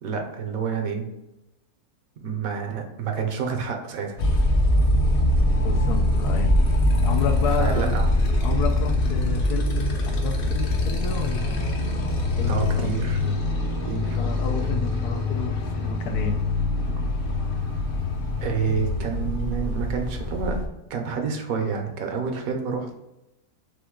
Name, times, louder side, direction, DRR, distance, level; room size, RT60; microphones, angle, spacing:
voice 1, 0.0-1.0 2.2-4.3 7.5-8.1 12.5-13.3 13.9-14.2 18.4-20.6 20.9-22.9, right 6 dB, 70° right, 3 dB, 1.1 m, -28 dB
Motorcycle, 4.2-20.6, left 1 dB, 50° left, 0.7 m, -23 dB
voice 2, 5.5-6.5 7.0-8.0 8.4-11.8 12.4-13.0 14.2-16.4, left 6 dB, 80° left, 6 dB, 1.1 m, -31 dB
3.8 x 3.4 x 3.6 m, 0.94 s
omnidirectional pair, 1.7 m